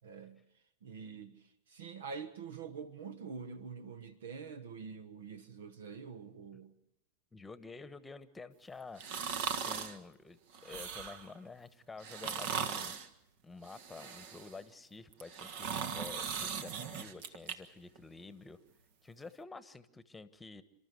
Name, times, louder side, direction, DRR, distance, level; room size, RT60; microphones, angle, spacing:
voice 1, 0.0-0.4 0.8-1.4 1.7-6.7, right 5 dB, 75° right, 1.3 m, -46 dB
voice 2, 7.3-9.0 9.6-12.9 13.4-18.6 19.0-20.6, left 4 dB, 10° left, 1.3 m, -50 dB
sound 1, 9.0-10.0 10.5-11.3 12.0-13.1 13.7-14.6 15.1-17.6 18.0-18.1, right 7 dB, 55° right, 1.5 m, -39 dB
29.5 x 13.0 x 8.3 m
hypercardioid pair, 105°, 0 cm